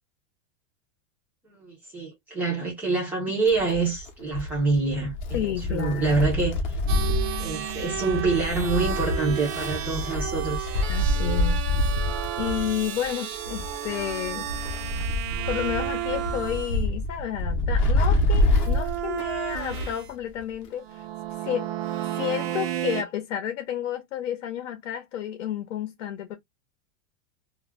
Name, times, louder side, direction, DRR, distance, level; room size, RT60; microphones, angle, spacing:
voice 1, 1.4-6.6 7.4-10.7, right 3 dB, 5° right, 0.4 m, -26 dB
Wind, 3.5-20.1 20.4-20.5 21.5-21.6, left 1 dB, 35° left, 0.6 m, -27 dB
voice 2, 5.3-6.2 10.9-11.6 12.4-14.5 15.5-21.0 21.4-21.7 22.2-26.4, left 10 dB, 70° left, 0.7 m, -31 dB
sound 1, 6.9-16.8 18.6-20.1 20.8-23.0, right 12 dB, 60° right, 0.5 m, -33 dB
2.2 x 2.0 x 3.4 m
supercardioid pair, 170°, 37 cm